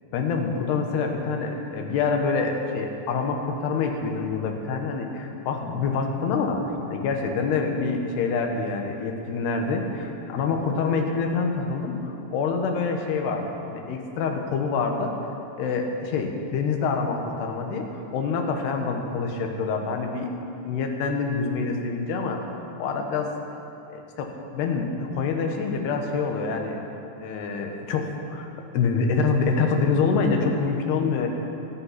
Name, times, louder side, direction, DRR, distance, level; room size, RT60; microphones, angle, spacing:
voice 1, 0.1-6.6 6.9-15.1 15.6-17.9 18.1-20.3 20.6-22.4 22.8-23.3 23.9-26.8 27.2-28.5 28.7-31.3, left 4 dB, 65° left, 3 dB, 3.1 m, -26 dB
25.5 x 8.9 x 5.9 m, 2.8 s
omnidirectional pair, 5.6 m